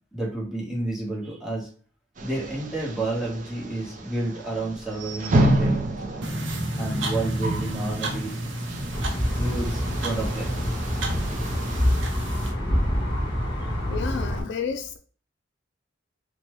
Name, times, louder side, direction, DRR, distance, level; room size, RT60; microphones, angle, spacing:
voice 1, 0.1-1.7 2.2-5.7 6.8-10.6 11.7-12.0, right 1 dB, ahead, 1.3 m, -29 dB
sound 1, 2.2-12.0, right 1 dB, 45° right, 0.5 m, -30 dB
sound 2, 6.2-12.5, right 1 dB, 75° right, 0.7 m, -32 dB
sound 3, 8.9-14.4, equal, 25° left, 1.3 m, -27 dB
voice 2, 13.6-15.0, left 6 dB, 65° left, 0.3 m, -31 dB
4.0 x 2.2 x 3.1 m
head